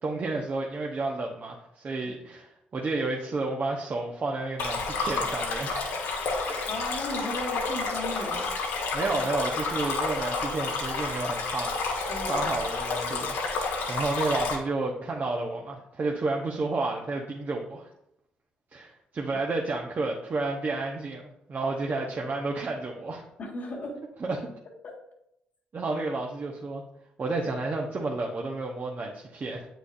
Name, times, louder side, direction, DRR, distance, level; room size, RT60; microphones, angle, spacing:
voice 1, 0.0-5.8 6.4-6.7 8.9-11.8 12.3-17.9 18.7-23.2 24.2-24.5 25.7-26.8 27.2-29.7, right 3 dB, 45° right, 0 dB, 1.0 m, -31 dB
Stream, 4.6-14.5, left 3 dB, 80° left, 1.6 m, -30 dB
voice 2, 6.6-8.5 12.1-12.5 19.3-19.4 23.4-24.0 24.8-24.9, left 2 dB, 60° left, -5 dB, 1.7 m, -36 dB
8.3 x 6.2 x 2.6 m, 0.81 s
hypercardioid pair, 50°, 4 cm